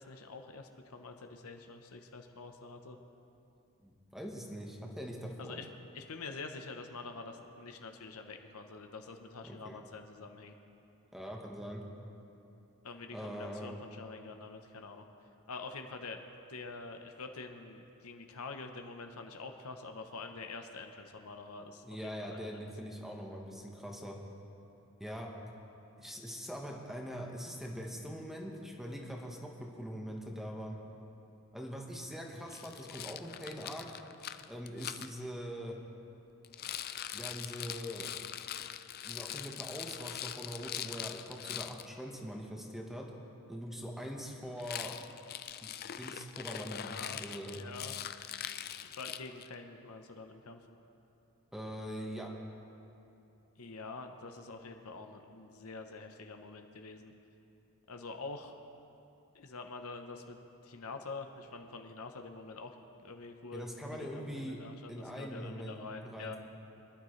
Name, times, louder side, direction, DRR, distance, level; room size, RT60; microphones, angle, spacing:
voice 1, 0.0-3.0 5.4-5.7 5.9-10.5 12.8-15.0 15.5-16.2 16.5-22.7 46.6-47.2 47.5-47.9 48.8-50.6 53.6-57.1 57.9-58.5 59.3-62.7 63.0-63.7 64.0-66.4, left 3 dB, 70° left, 5 dB, 0.9 m, -46 dB
voice 2, 3.8-5.7 9.4-9.8 11.1-11.8 13.1-13.7 21.8-24.2 25.0-25.3 26.0-30.8 31.5-33.9 34.5-35.8 37.1-38.1 39.0-43.1 43.5-44.9 45.6-45.7 46.0-47.6 51.5-52.3 63.5-64.6 64.9-65.8 66.0-66.4, equal, ahead, 0 dB, 1.2 m, -42 dB
Rattle, 32.5-35.1 36.4-41.9 44.6-49.5, left 11 dB, 45° left, 0.4 m, -42 dB
23.5 x 11.0 x 3.2 m, 2.8 s
head